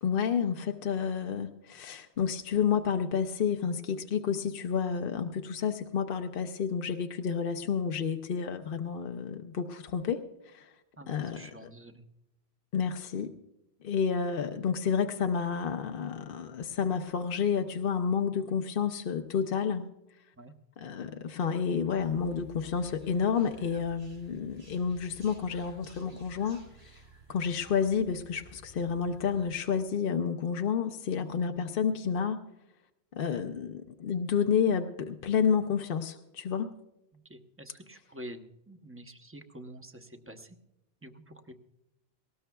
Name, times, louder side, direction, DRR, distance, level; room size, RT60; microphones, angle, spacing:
voice 1, 0.0-10.7 11.1-11.7 12.7-13.3 13.8-19.8 20.8-26.6 27.3-32.4 33.1-36.7, left 7 dB, 60° left, 6 dB, 0.8 m, -30 dB
voice 2, 11.0-12.0 20.3-20.5 37.1-40.6 41.0-41.5, right 1 dB, 15° right, 6 dB, 0.8 m, -48 dB
sound 1, 22.0-29.5, right 3 dB, 70° right, 4.5 m, -54 dB
19.5 x 18.0 x 2.3 m, 0.90 s
omnidirectional pair, 1.1 m